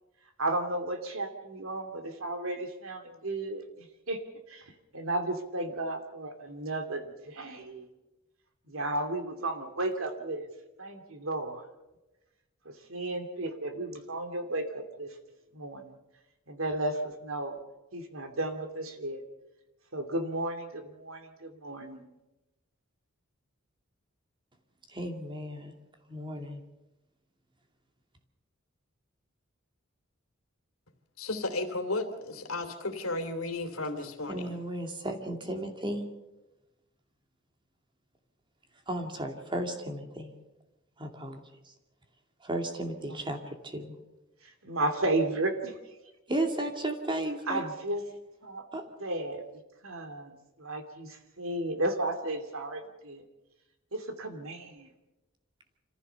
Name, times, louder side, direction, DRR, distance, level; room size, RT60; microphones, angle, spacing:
voice 1, 0.4-4.2 4.5-7.9 8.7-10.5 10.8-11.6 12.6-15.1 15.5-16.0 16.5-17.6 17.9-19.2 19.9-22.1 44.4-45.8 47.5-48.0 48.4-48.6 49.0-49.4 49.8-53.2 53.9-54.9, right 2 dB, 75° right, 7 dB, 2.8 m, -34 dB
voice 2, 24.9-25.8 26.1-26.6 34.3-36.1 38.9-40.4 41.0-41.7 42.4-44.0 46.3-47.6 48.7-48.8, right 1 dB, 25° right, 4 dB, 2.5 m, -34 dB
voice 3, 31.2-34.5, left 2 dB, 85° left, 6 dB, 2.8 m, -34 dB
26.5 x 15.0 x 6.9 m, 1.0 s
head